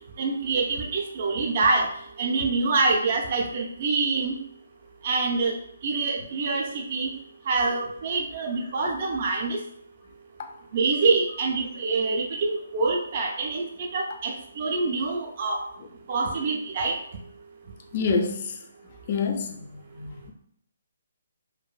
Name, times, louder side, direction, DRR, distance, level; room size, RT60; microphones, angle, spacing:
voice 1, 0.2-1.9 2.2-4.3 5.0-5.5 5.8-7.1 7.5-9.6 10.7-15.6 16.1-17.0, right 3 dB, 45° right, 0 dB, 0.4 m, -25 dB
voice 2, 17.9-18.5 19.1-19.7 20.0-20.3, left 4 dB, 40° left, 4 dB, 0.3 m, -27 dB
2.5 x 2.4 x 2.2 m, 0.68 s
figure-of-eight pair, 140°, 0 cm